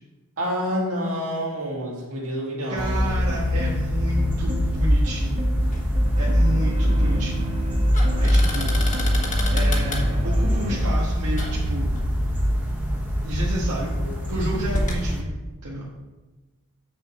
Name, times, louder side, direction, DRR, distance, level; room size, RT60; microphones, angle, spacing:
voice 1, 0.4-3.2 14.0-14.3, equal, 65° right, -3 dB, 2.4 m, -28 dB
voice 2, 2.7-5.5 6.2-7.5 8.2-8.8 9.5-12.0 13.2-13.9 14.3-15.3 15.6-15.9, right 1 dB, 85° right, -6 dB, 1.4 m, -31 dB
sound 1, 2.8-15.2, equal, 10° right, 1.1 m, -23 dB
sound 2, 3.1-10.9, right 1 dB, 30° right, 0.7 m, -35 dB
sound 3, 5.6-15.0, left 1 dB, 35° left, 1.3 m, -34 dB
7.5 x 6.7 x 4.2 m, 1.2 s
head